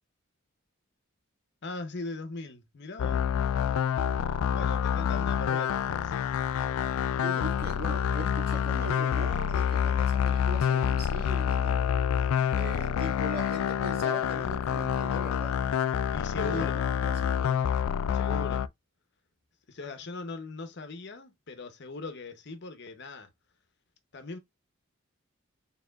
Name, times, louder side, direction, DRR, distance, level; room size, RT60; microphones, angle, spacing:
voice 1, 1.6-3.3 4.5-6.2 16.1-16.7 17.4-17.6 18.1-18.7 19.7-23.3 24.1-24.4, left 3 dB, 50° left, 0.8 m, -39 dB
sound 1, 3.0-18.7, left 8 dB, 75° left, 0.3 m, -27 dB
voice 2, 7.2-11.8 12.5-15.6 16.4-16.7 17.0-17.4, right 1 dB, 50° right, 1.8 m, -40 dB
4.4 x 3.6 x 2.3 m
head